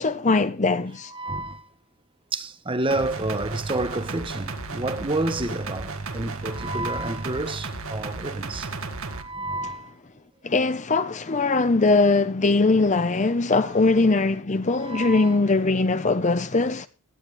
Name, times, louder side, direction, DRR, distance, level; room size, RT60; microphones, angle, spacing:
voice 1, 0.0-1.1 10.4-16.9, left 3 dB, 35° left, 0.8 m, -21 dB
voice 2, 1.1-1.7 2.3-9.9 13.6-13.7 14.8-15.4, right 2 dB, 25° right, 1.1 m, -29 dB
sound 1, 2.9-9.2, right 3 dB, 70° right, 1.8 m, -34 dB
17.5 x 12.0 x 3.4 m
head